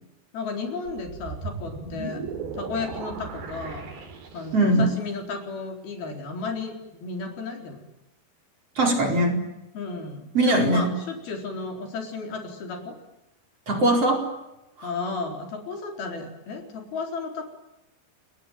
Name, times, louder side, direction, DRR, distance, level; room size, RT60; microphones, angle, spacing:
voice 1, 0.3-2.2 2.5-3.9 4.3-7.8 9.7-13.0 14.8-17.5, left 4 dB, 65° left, 4 dB, 6.0 m, -33 dB
sound 1, 0.9-4.8, right 4 dB, 85° right, 5.9 m, -36 dB
voice 2, 4.5-4.8 8.8-9.4 10.3-10.9 13.7-14.3 14.8-14.9, right 1 dB, 35° right, 3 dB, 5.5 m, -21 dB
29.0 x 22.0 x 9.2 m, 0.95 s
omnidirectional pair, 4.6 m